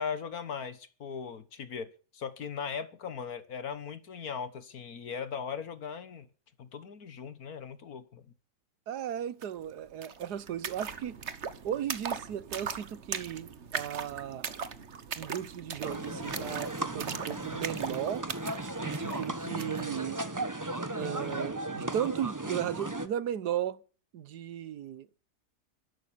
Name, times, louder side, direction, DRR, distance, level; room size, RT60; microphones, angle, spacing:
voice 1, 0.0-6.3 6.6-8.2, left 6 dB, 65° left, 1.8 m, -38 dB
voice 2, 8.9-11.2 11.6-14.5 15.2-18.3 18.8-20.2 21.0-23.8 24.1-25.1, right 10 dB, 80° right, 1.5 m, -36 dB
sound 1, 9.4-9.5 9.7-19.9, right 6 dB, 45° right, 1.4 m, -39 dB
sound 2, 15.8-23.1, right 2 dB, 15° right, 1.1 m, -36 dB
13.5 x 11.5 x 8.7 m
omnidirectional pair, 1.7 m